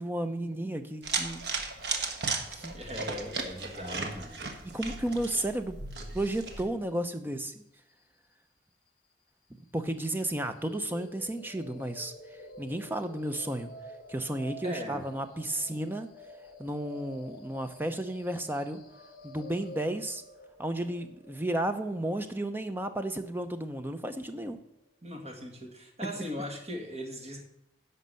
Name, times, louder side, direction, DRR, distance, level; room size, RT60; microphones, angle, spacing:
voice 1, 0.0-1.4 2.5-2.7 4.7-5.8 6.1-7.6 9.5-13.7 14.1-16.1 16.6-18.8 19.2-20.2 20.6-24.6 26.0-26.3, right 1 dB, 10° right, 8 dB, 0.7 m, -33 dB
sound 1, 1.0-6.6, right 4 dB, 65° right, 1.4 m, -35 dB
voice 2, 2.7-4.4 14.6-15.0 25.0-27.4, equal, 35° right, 1 dB, 2.1 m, -39 dB
sound 2, 10.6-24.6, equal, 50° left, 1.2 m, -49 dB
11.0 x 5.6 x 7.6 m, 0.81 s
head